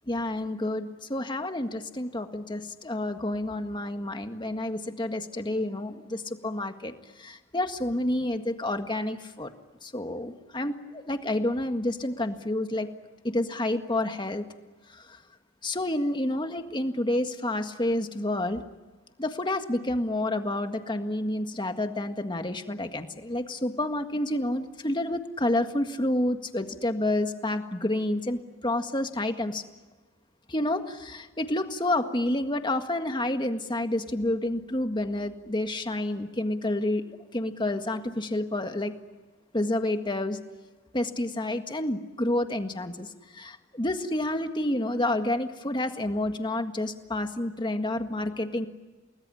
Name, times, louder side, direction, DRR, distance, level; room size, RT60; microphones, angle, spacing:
voice 1, 0.1-6.9 7.2-9.5 9.8-12.9 13.3-14.4 15.0-15.1 15.6-18.6 19.2-29.6 30.5-38.9 39.5-40.4 40.9-43.1 43.3-48.7, left 1 dB, 25° left, 6 dB, 1.7 m, -29 dB
29.0 x 20.5 x 9.9 m, 1.3 s
head